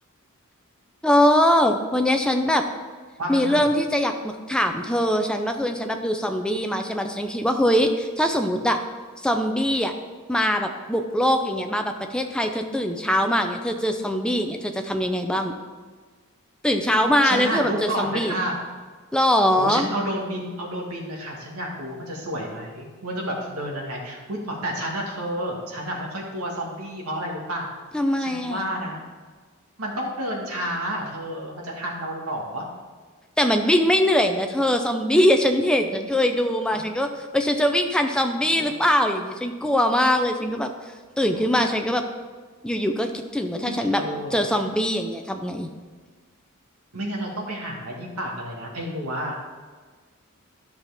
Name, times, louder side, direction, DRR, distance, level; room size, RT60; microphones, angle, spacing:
voice 1, 1.0-2.7 3.3-8.8 9.2-9.9 10.3-15.5 16.6-18.3 19.1-19.9 27.9-28.7 33.4-37.1 37.3-40.7 41.2-42.0 42.6-44.0 44.3-45.7, equal, 5° left, 4 dB, 0.6 m, -22 dB
voice 2, 3.2-3.6 17.2-18.6 19.6-27.7 28.2-29.0 29.8-32.7 36.7-36.8 38.5-38.8 41.3-41.5 43.6-44.4 46.9-49.4, right 1 dB, 85° right, -1 dB, 1.7 m, -30 dB
11.5 x 5.8 x 3.5 m, 1.4 s
head